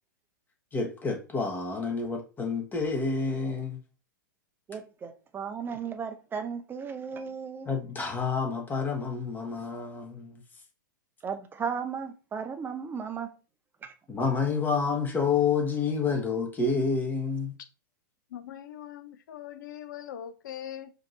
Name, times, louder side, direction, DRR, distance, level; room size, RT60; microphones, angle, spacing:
voice 1, 0.7-3.8 7.7-10.4 14.1-17.5, left 5 dB, 15° left, 1.0 m, -29 dB
voice 2, 4.7-7.8 11.2-13.3 13.8-13.9, right 6 dB, 20° right, 0.6 m, -35 dB
voice 3, 18.3-20.9, left 10 dB, 65° left, 0.6 m, -41 dB
5.1 x 2.8 x 2.5 m
hypercardioid pair, 105°, 11 cm